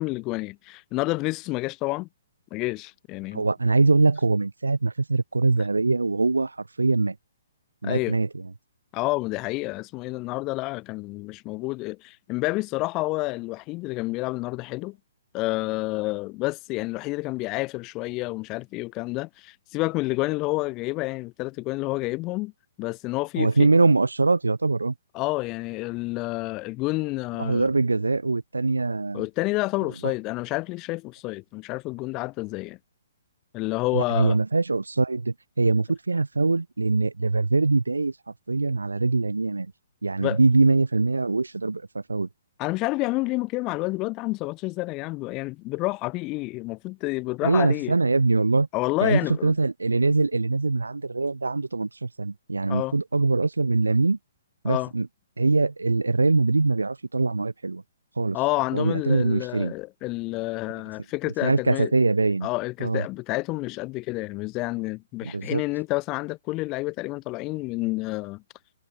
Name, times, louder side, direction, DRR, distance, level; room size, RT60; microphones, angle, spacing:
voice 1, 0.0-2.1 2.5-3.4 7.8-8.1 8.9-15.0 15.3-22.5 22.8-23.7 25.1-27.7 29.1-32.8 33.5-34.4 40.2-40.4 42.6-47.9 48.7-49.5 52.7-52.9 54.6-54.9 58.3-61.9 62.4-68.4, left 22 dB, 30° left, 1.7 m, -29 dB
voice 2, 3.3-7.2 7.8-8.5 23.4-24.9 27.4-29.2 30.0-30.1 33.9-38.1 38.5-39.7 40.0-42.3 47.4-48.7 49.0-54.2 54.6-55.1 55.4-57.8 58.2-58.4 58.7-59.7 61.4-62.5 62.8-63.0 65.2-65.6, right 3 dB, 90° right, 0.8 m, -23 dB
hypercardioid pair, 130°, 0 cm